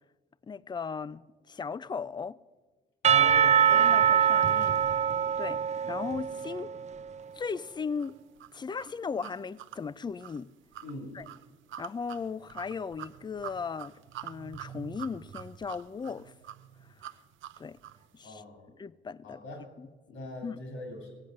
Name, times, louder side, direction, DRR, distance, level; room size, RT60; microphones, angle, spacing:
voice 1, 0.5-2.4 3.7-4.8 5.4-6.7 7.3-8.2 8.5-10.5 11.1-11.3 11.8-13.9 14.2-16.3 17.6-17.8 18.1-18.4 18.7-19.4 19.8-19.9 20.4-20.6, left 5 dB, 20° left, 0.4 m, -37 dB
voice 2, 3.0-3.7 10.8-11.1 18.2-18.7 19.2-19.6 20.1-21.1, left 1 dB, 85° left, 2.8 m, -41 dB
Percussion / Church bell, 3.0-7.0, right 8 dB, 35° right, 0.5 m, -24 dB
sound 1, 8.0-18.1, right 11 dB, 75° right, 0.6 m, -46 dB
16.5 x 8.3 x 6.5 m
cardioid pair, 90°, 20 cm